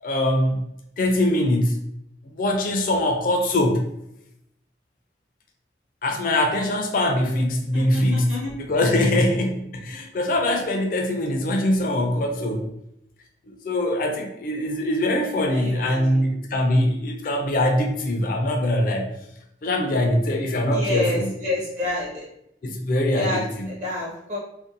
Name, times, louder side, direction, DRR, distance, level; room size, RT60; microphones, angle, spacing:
voice 1, 0.0-0.6 1.0-1.8 2.2-3.8 6.0-12.7 13.5-19.2 19.6-21.3 22.6-23.8, left 1 dB, 50° left, 3 dB, 0.4 m, -23 dB
voice 2, 7.7-8.5 15.5-16.2 20.7-22.2 23.1-23.4 23.7-24.4, left 2 dB, 40° right, -4 dB, 0.6 m, -28 dB
2.6 x 2.1 x 2.5 m, 0.79 s
head